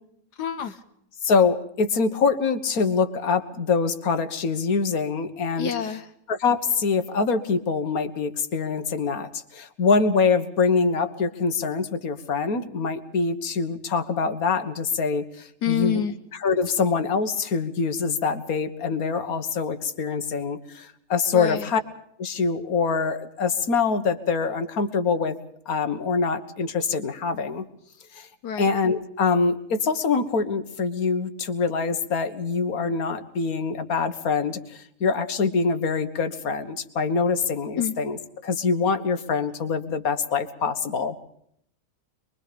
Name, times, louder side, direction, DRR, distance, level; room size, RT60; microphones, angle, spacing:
voice 1, 0.4-0.8 5.6-6.1 15.6-16.2 21.3-21.7 28.4-28.7 37.8-37.9, left 8 dB, 80° left, 8 dB, 1.6 m, -27 dB
voice 2, 1.2-5.7 6.3-16.0 16.3-21.8 22.2-25.4 25.7-27.7 28.1-28.3 28.6-41.2, left 5 dB, 60° left, 9 dB, 1.9 m, -24 dB
24.5 x 22.5 x 5.2 m, 0.71 s
omnidirectional pair, 1.7 m